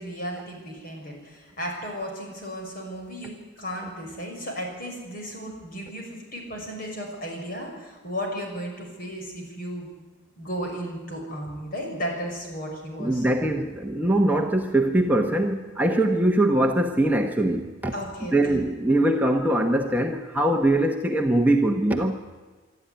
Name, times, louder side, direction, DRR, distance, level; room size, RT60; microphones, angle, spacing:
voice 1, 0.0-9.9 10.4-13.3 14.3-14.4 17.9-18.6, equal, 45° left, 1 dB, 6.3 m, -34 dB
voice 2, 13.0-17.9 18.3-22.2, right 1 dB, 10° right, 2 dB, 1.1 m, -22 dB
25.0 x 13.0 x 9.5 m, 1.4 s
head